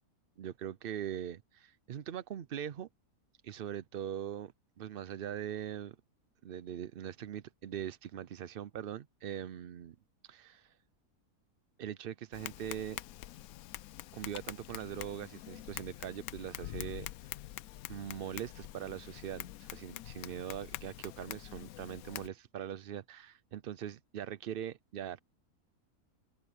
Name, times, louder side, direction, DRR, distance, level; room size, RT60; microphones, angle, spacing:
voice 1, 0.4-2.9 3.4-4.5 4.8-6.0 6.4-10.0 10.2-10.7 11.8-13.0 14.1-17.1 17.9-25.2, right 10 dB, 70° right, 0.5 m, -41 dB
Tap, 12.3-22.3, left 14 dB, 75° left, 1.0 m, -45 dB
open air
omnidirectional pair, 1.6 m